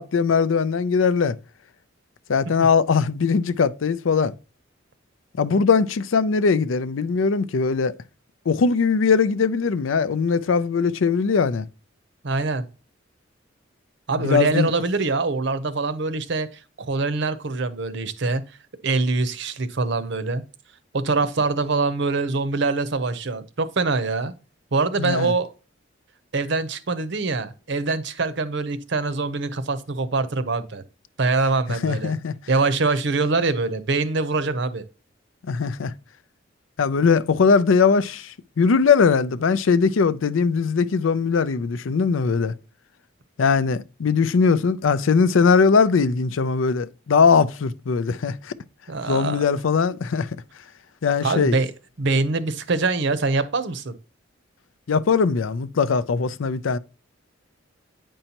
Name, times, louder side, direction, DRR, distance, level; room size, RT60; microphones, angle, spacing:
voice 1, 0.0-1.4 2.3-4.3 5.4-7.9 8.5-11.7 14.2-14.7 25.0-25.3 31.8-32.3 35.5-35.9 36.8-42.5 43.4-48.5 49.1-50.3 51.0-51.6 54.9-56.8, left 5 dB, 85° left, 0.5 m, -20 dB
voice 2, 12.2-12.6 14.1-16.5 16.8-18.4 18.8-20.4 20.9-24.3 24.7-25.5 26.3-30.8 31.2-32.1 32.5-34.8 48.9-49.4 51.2-51.7 52.0-53.9, right 3 dB, 65° right, 0.7 m, -24 dB
8.8 x 5.4 x 2.9 m
head